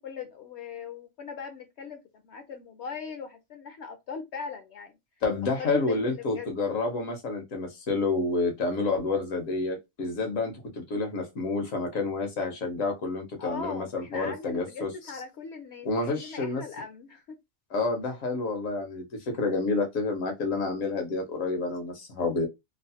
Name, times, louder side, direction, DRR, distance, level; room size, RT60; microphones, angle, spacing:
voice 1, 0.0-5.0 5.6-6.5 13.4-17.4, left 5 dB, 65° left, 0.8 m, -40 dB
voice 2, 5.2-14.9 15.8-16.6 17.7-19.1 19.4-22.5, left 3 dB, 80° left, 1.4 m, -29 dB
3.1 x 2.0 x 2.7 m
omnidirectional pair, 1.3 m